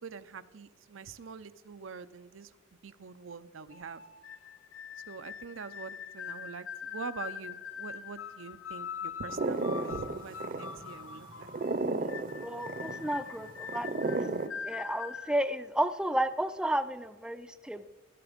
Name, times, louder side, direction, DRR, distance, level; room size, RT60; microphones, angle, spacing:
voice 1, 0.0-2.5 2.8-4.0 5.1-11.5, right 5 dB, 80° right, 12 dB, 0.6 m, -44 dB
sound 1, 3.7-15.3, left 7 dB, 90° left, 0.8 m, -43 dB
sound 2, 9.3-14.5, right 3 dB, 45° right, 0.8 m, -34 dB
voice 2, 12.4-14.2 14.6-17.9, right 1 dB, 5° right, 10 dB, 0.5 m, -32 dB
17.0 x 11.0 x 5.1 m, 1.2 s
head